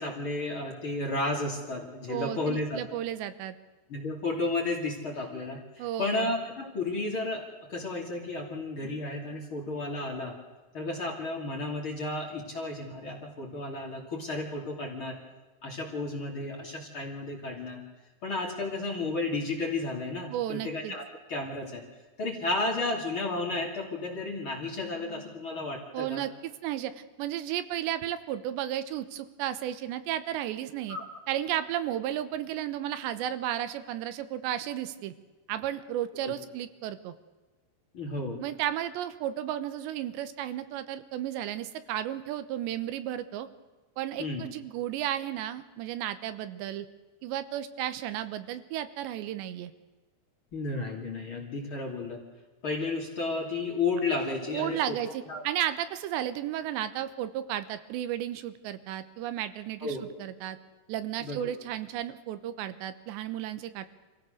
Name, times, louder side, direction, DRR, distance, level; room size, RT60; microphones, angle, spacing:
voice 1, 0.0-2.8 3.9-10.4 10.7-15.2 15.6-17.8 18.2-21.8 22.2-26.2 30.9-31.1 36.2-36.3 37.9-38.4 44.2-44.4 50.5-52.2 52.6-55.0 55.3-55.4 59.8-60.0 61.2-61.5, left 2 dB, 35° left, 1 dB, 2.9 m, -33 dB
voice 2, 2.1-3.6 5.8-6.3 20.3-20.9 25.9-31.0 31.3-35.1 35.5-37.1 38.4-43.5 44.0-46.9 47.2-49.7 54.5-60.6 60.9-63.9, right 11 dB, 90° right, 12 dB, 3.3 m, -33 dB
25.5 x 16.0 x 6.5 m, 1.2 s
omnidirectional pair, 5.0 m